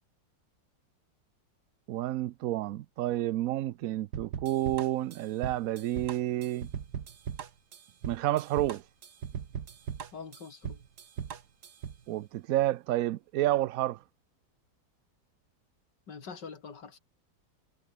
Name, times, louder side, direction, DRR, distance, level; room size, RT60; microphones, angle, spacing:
voice 1, 1.9-6.7 8.0-8.8 12.1-14.0, right 14 dB, 75° right, 0.8 m, -30 dB
sound 1, 4.1-12.0, right 7 dB, 60° right, 2.0 m, -39 dB
voice 2, 10.1-10.8 16.1-17.0, left 5 dB, 65° left, 3.3 m, -44 dB
omnidirectional pair, 2.0 m